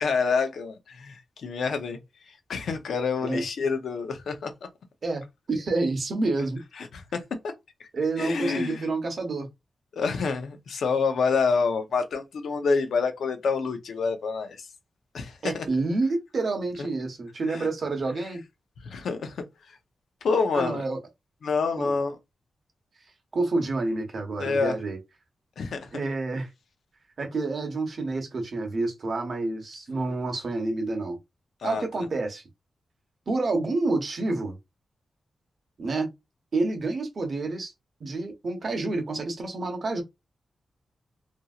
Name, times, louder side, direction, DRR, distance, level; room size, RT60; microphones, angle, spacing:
voice 1, 0.0-2.0 2.3-4.5 6.8-7.2 7.8-7.9 8.2-8.8 9.9-14.7 15.1-15.7 17.5-17.7 18.8-19.8 20.2-20.8 21.4-22.2 24.4-24.7 25.6-25.9 31.6-32.0, left 4 dB, 75° left, 0.6 m, -27 dB
voice 2, 5.5-6.6 7.9-9.5 15.4-18.4 20.5-21.0 21.8-21.9 23.3-25.0 25.9-26.5 27.2-31.2 31.6-32.4 33.3-34.6 35.8-36.1 36.5-37.7 38.0-40.0, right 3 dB, 50° right, 0.9 m, -28 dB
2.8 x 2.6 x 2.4 m
wide cardioid pair, 135°, 0 cm